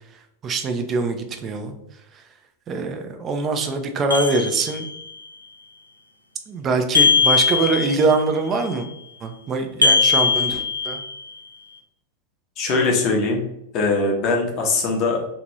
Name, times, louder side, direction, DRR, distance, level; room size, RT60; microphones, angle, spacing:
voice 1, 0.4-1.8 2.7-4.9 6.5-8.9 9.2-11.0, right 3 dB, 25° right, 6 dB, 0.4 m, -23 dB
sound 1, 4.1-5.1 6.9-8.2 9.8-11.3, left 5 dB, 90° left, 0.4 m, -20 dB
voice 2, 12.6-13.5 13.7-15.3, left 3 dB, 40° left, 0 dB, 0.7 m, -21 dB
2.7 x 2.5 x 3.1 m, 0.81 s
figure-of-eight pair, 90°, 0 cm